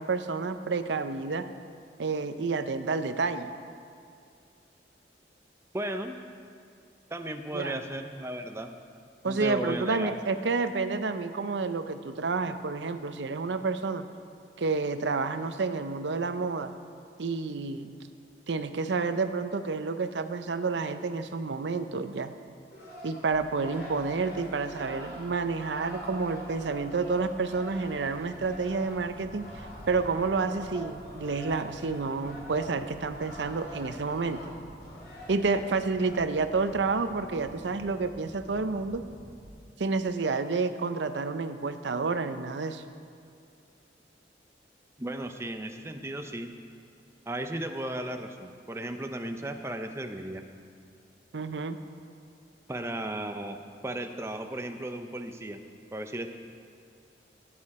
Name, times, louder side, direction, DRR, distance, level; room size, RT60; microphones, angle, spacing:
voice 1, 0.0-1.5 2.0-3.5 7.5-7.8 9.2-14.1 14.6-16.7 17.2-17.9 18.5-22.3 23.0-29.5 29.9-34.4 35.3-39.0 39.8-42.8 51.3-51.8, right 4 dB, 80° right, 10 dB, 0.6 m, -29 dB
voice 2, 5.7-6.2 7.1-8.7 9.2-10.1 45.0-46.5 47.3-50.4 52.7-55.6 55.9-56.3, right 1 dB, 15° right, 6 dB, 0.6 m, -35 dB
sound 1, 22.7-36.2, equal, 65° left, 2.6 m, -45 dB
sound 2, 23.3-39.5, equal, 15° left, 1.0 m, -51 dB
16.5 x 8.6 x 4.2 m, 2.4 s
head